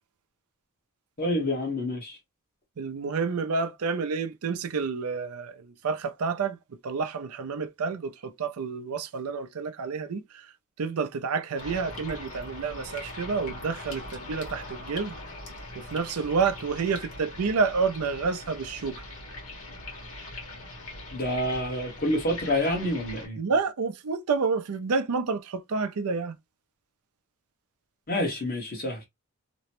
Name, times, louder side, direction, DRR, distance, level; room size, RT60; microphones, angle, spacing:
voice 1, 1.2-2.2 21.1-23.4 28.1-29.0, left 1 dB, 45° left, 1.2 m, -28 dB
voice 2, 2.8-6.6 6.8-10.2 10.8-15.1 15.8-19.0 23.4-26.4, right 5 dB, 80° right, 0.5 m, -29 dB
sound 1, 11.6-23.3, left 2 dB, 80° left, 1.3 m, -41 dB
2.9 x 2.1 x 2.9 m
head